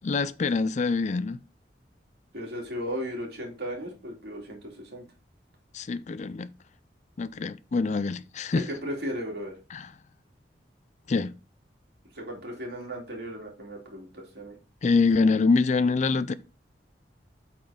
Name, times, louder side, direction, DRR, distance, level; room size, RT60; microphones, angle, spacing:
voice 1, 0.0-1.4 5.7-6.5 7.2-8.7 9.7-9.9 11.1-11.3 14.8-16.3, left 4 dB, 40° left, 0.4 m, -25 dB
voice 2, 2.3-5.0 8.5-9.5 12.1-14.6, equal, 60° right, 2.9 m, -36 dB
8.5 x 4.2 x 5.1 m
head